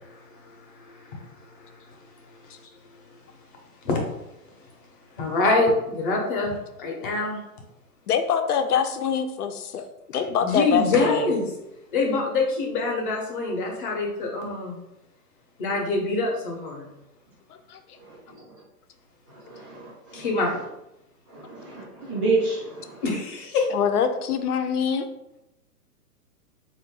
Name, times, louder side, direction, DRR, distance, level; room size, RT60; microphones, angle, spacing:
voice 1, 0.1-1.2 1.5-1.9 3.8-4.0 5.2-7.4 10.4-11.4 11.9-14.8 15.6-16.9 20.1-20.6 23.0-23.6, left 3 dB, 35° left, 1 dB, 0.8 m, -25 dB
voice 2, 8.1-11.3 17.7-17.8 23.7-25.1, left 7 dB, 70° left, 8 dB, 0.7 m, -25 dB
voice 3, 19.3-20.3 21.3-23.0, right 3 dB, 10° right, -9 dB, 0.5 m, -29 dB
4.0 x 2.5 x 3.6 m, 0.90 s
hypercardioid pair, 160°, 47 cm